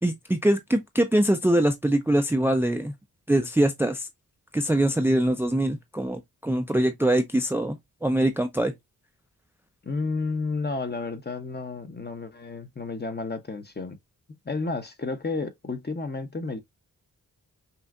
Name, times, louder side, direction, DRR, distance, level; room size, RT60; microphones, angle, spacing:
voice 1, 0.0-2.9 3.3-4.1 4.5-8.7, right 1 dB, 5° right, 0.6 m, -23 dB
voice 2, 9.8-14.0 14.4-16.6, left 3 dB, 30° left, 1.0 m, -31 dB
5.6 x 2.5 x 2.5 m
cardioid pair, 55°, 35 cm